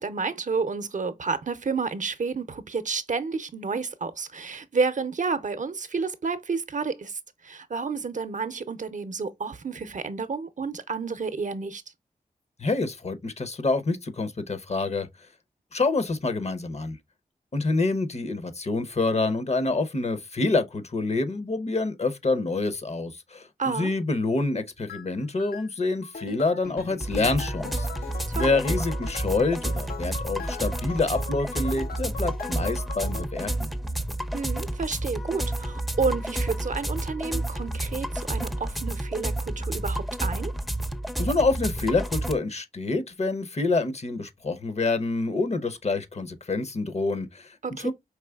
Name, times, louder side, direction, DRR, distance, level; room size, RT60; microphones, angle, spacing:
voice 1, 0.0-11.8 23.6-23.9 28.3-28.6 34.3-40.5 47.6-47.9, right 4 dB, 55° right, 0.6 m, -30 dB
voice 2, 12.6-15.1 15.7-17.0 17.5-27.9 28.3-33.7 41.2-47.5 47.8-47.9, left 3 dB, 45° left, 0.7 m, -27 dB
sound 1, 24.9-25.1 25.4-25.7 26.0-33.3, left 6 dB, 85° left, 0.5 m, -40 dB
sound 2, 27.0-42.4, right 1 dB, ahead, 0.5 m, -30 dB
4.7 x 3.1 x 2.2 m
wide cardioid pair, 60°, 15 cm